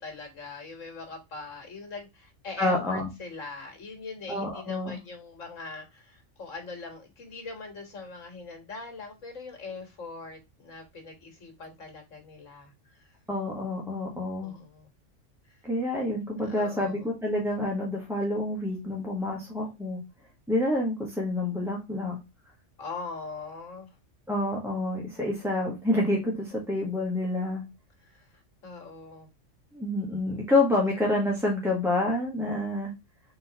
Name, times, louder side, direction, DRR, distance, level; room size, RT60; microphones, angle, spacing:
voice 1, 0.0-13.2 14.4-14.9 15.5-15.6 16.4-17.1 22.8-24.0 28.0-29.3 30.9-31.0, left 3 dB, 85° left, 3 dB, 1.9 m, -42 dB
voice 2, 2.6-3.1 4.3-5.0 13.3-14.6 15.6-20.0 20.5-22.2 24.3-27.6 29.7-32.9, left 1 dB, ahead, -3 dB, 1.1 m, -28 dB
4.2 x 3.7 x 2.8 m, 0.24 s
omnidirectional pair, 1.3 m